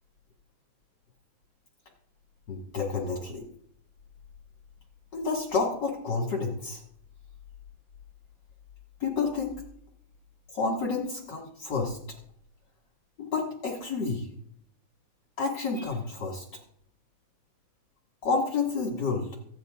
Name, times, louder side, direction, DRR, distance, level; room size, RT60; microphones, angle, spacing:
voice 1, 2.5-3.4 5.1-6.8 9.0-9.5 10.5-12.0 13.2-14.3 15.4-16.5 18.2-19.3, left 4 dB, 40° left, -1 dB, 1.8 m, -29 dB
25.0 x 9.5 x 2.4 m, 0.71 s
omnidirectional pair, 3.8 m